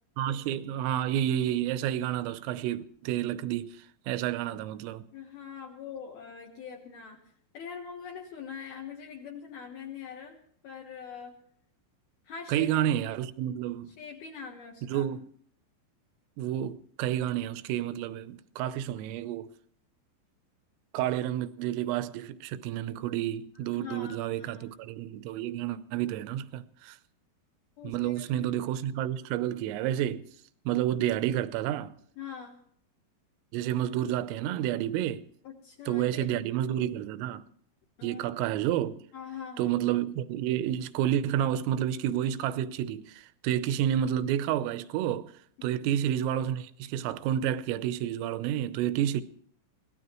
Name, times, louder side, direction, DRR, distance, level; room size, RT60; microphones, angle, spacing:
voice 1, 0.2-5.0 12.5-13.9 14.8-15.3 16.4-19.5 20.9-27.0 27.8-30.3 30.7-31.9 33.5-35.3 35.9-37.4 38.0-39.0 39.6-45.3 45.6-49.2, right 11 dB, 85° right, 3.4 m, -30 dB
voice 2, 5.1-7.2 7.5-10.4 10.6-11.4 12.2-12.7 14.0-15.1 23.7-24.7 27.8-28.3 32.2-32.6 35.4-36.3 38.0-38.2 39.1-39.8 45.6-45.7, left 7 dB, 65° left, 2.7 m, -43 dB
23.5 x 17.5 x 3.1 m
omnidirectional pair, 5.9 m